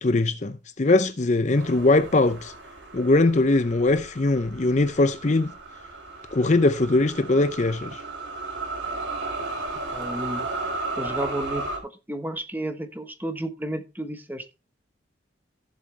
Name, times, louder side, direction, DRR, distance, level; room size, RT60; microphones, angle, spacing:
voice 1, 0.0-2.5 2.9-5.5 6.3-8.0, left 2 dB, 40° left, 0.6 m, -21 dB
sound 1, 1.5-11.8, right 3 dB, 70° right, 4.2 m, -34 dB
voice 2, 9.9-10.5 11.0-14.5, right 1 dB, 10° right, 1.2 m, -32 dB
15.0 x 7.5 x 3.3 m
head